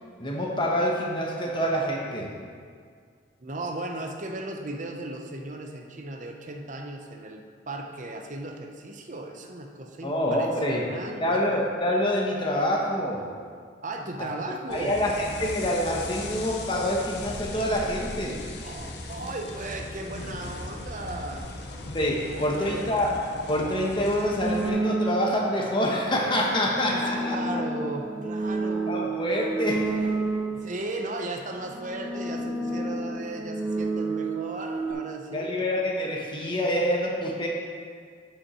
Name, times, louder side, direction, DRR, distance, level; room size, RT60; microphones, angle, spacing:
voice 1, 0.2-2.3 10.0-10.8 11.2-13.3 14.2-14.3 14.7-18.4 21.9-23.1 23.5-27.4 28.9-29.9 35.3-37.5, equal, 25° left, -1 dB, 1.1 m, -26 dB
voice 2, 3.4-11.5 13.8-15.0 18.6-21.5 22.1-23.0 26.9-29.1 30.5-35.6, right 2 dB, 45° right, 3 dB, 0.8 m, -36 dB
sound 1, 14.7-24.7, left 2 dB, 65° left, 0.8 m, -38 dB
sound 2, 24.4-25.5 26.3-30.8 31.5-34.9, right 2 dB, 10° right, 1.0 m, -30 dB
11.5 x 5.4 x 4.3 m, 2.1 s
head